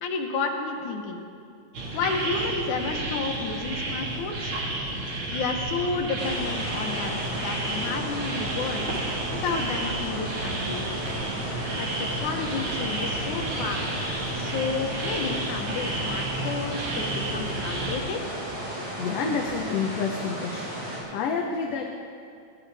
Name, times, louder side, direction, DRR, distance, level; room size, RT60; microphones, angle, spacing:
voice 1, 0.0-1.2 1.9-4.5 5.3-8.9 9.4-10.9 11.8-14.1 14.4-18.2, left 4 dB, 85° left, 3 dB, 2.8 m, -31 dB
sound 1, 1.7-18.0, right 2 dB, 50° right, 2.5 m, -32 dB
sound 2, 6.2-21.0, right 1 dB, 70° right, 6.7 m, -35 dB
sound 3, 7.9-11.6 12.1-12.2 12.7-13.8 14.3-14.8 15.3-15.4 15.9-16.4 16.9-17.0 17.5-18.0 18.5-18.6 19.1-19.6, equal, 5° right, 2.3 m, -47 dB
voice 2, 19.0-20.7 21.1-21.9, left 5 dB, 65° left, 1 dB, 1.9 m, -28 dB
22.0 x 17.0 x 3.5 m, 2.4 s
omnidirectional pair, 3.3 m